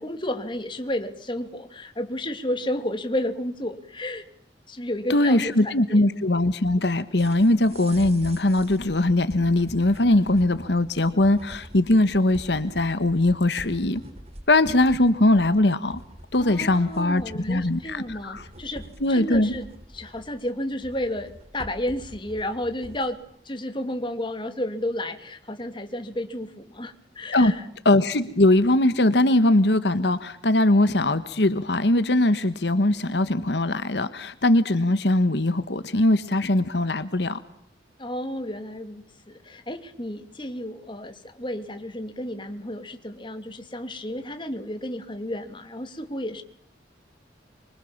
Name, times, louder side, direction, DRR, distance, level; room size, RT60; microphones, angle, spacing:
voice 1, 0.0-4.2 4.7-6.0 16.3-19.7 19.9-23.2 23.4-27.6 38.0-46.4, left 1 dB, 30° left, 7 dB, 2.7 m, -32 dB
voice 2, 5.1-14.0 14.5-16.0 16.3-18.4 19.0-19.6 27.3-27.5 27.8-37.4, left 1 dB, 75° left, 12 dB, 1.3 m, -21 dB
sound 1, 7.2-23.2, right 1 dB, 35° right, 3.2 m, -45 dB
26.0 x 25.0 x 7.3 m, 0.65 s
head